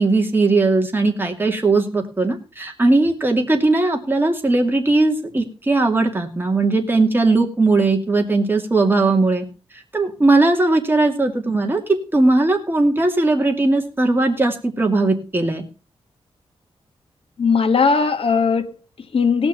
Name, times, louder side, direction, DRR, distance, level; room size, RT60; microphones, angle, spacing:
voice 1, 0.0-9.5 9.9-15.6, right 2 dB, 20° right, 2 dB, 2.5 m, -18 dB
voice 2, 17.4-19.5, left 5 dB, 65° left, 8 dB, 1.4 m, -19 dB
18.0 x 6.2 x 5.7 m, 0.34 s
wide cardioid pair, 130°, 10 cm